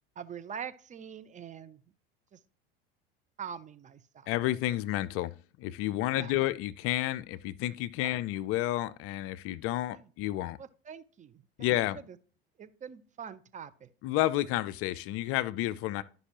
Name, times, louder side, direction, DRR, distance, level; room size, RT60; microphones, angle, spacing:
voice 1, 0.2-1.8 2.3-2.4 3.4-4.3 6.1-6.3 8.0-8.1 9.9-10.1 10.6-11.7 12.1-12.2 12.6-13.9, right 7 dB, 25° right, 0.5 m, -44 dB
voice 2, 4.3-5.3 5.6-10.6 11.6-12.0 14.0-16.0, left 15 dB, 50° left, 0.4 m, -30 dB
11.5 x 5.3 x 2.9 m
hypercardioid pair, 80°, 30 cm